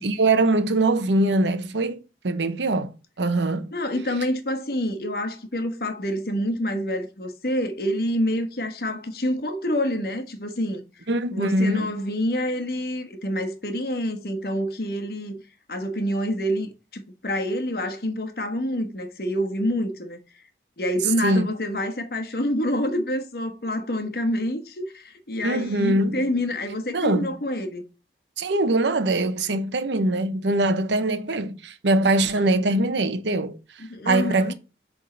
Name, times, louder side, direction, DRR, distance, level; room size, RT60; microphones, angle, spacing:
voice 1, 0.0-3.7 11.1-11.9 21.2-21.5 25.4-26.3 26.9-27.3 28.4-33.6 34.1-34.5, right 2 dB, 80° right, 0.8 m, -22 dB
voice 2, 3.7-10.8 11.3-15.4 15.7-20.2 20.8-27.8 33.8-34.5, left 1 dB, 55° left, 1.2 m, -27 dB
7.6 x 3.6 x 3.8 m
head